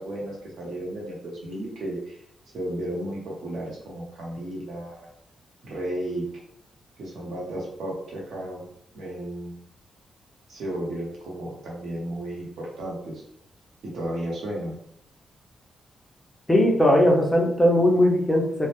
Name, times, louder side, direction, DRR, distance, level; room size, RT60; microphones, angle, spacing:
voice 1, 0.0-2.2 2.5-5.1 5.6-6.2 7.0-8.6 8.9-9.5 10.5-13.2 13.9-14.8, right 1 dB, 75° right, -3 dB, 0.8 m, -33 dB
voice 2, 16.5-18.7, left 1 dB, 10° left, -1 dB, 0.4 m, -19 dB
2.1 x 2.1 x 2.8 m, 0.70 s
wide cardioid pair, 170°, 0 cm